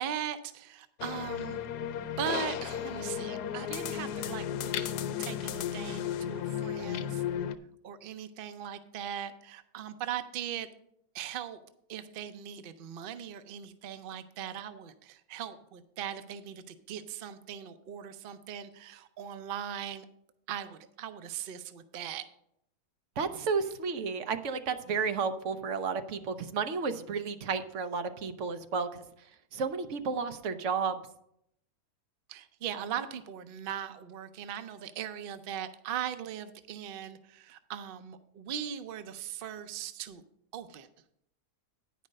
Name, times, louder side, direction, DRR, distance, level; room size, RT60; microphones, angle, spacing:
voice 1, 0.0-1.7 2.2-7.2 7.8-10.7 11.1-11.6 11.9-20.1 20.5-22.3 23.3-23.5 32.3-40.2 40.5-40.9, right 9 dB, 75° right, 11 dB, 0.5 m, -39 dB
sound 1, 1.0-7.6, left 9 dB, 80° left, 1.1 m, -34 dB
voice 2, 23.2-29.0 29.5-31.0, right 5 dB, 60° right, 9 dB, 0.9 m, -32 dB
9.7 x 5.3 x 6.4 m, 0.75 s
omnidirectional pair, 1.7 m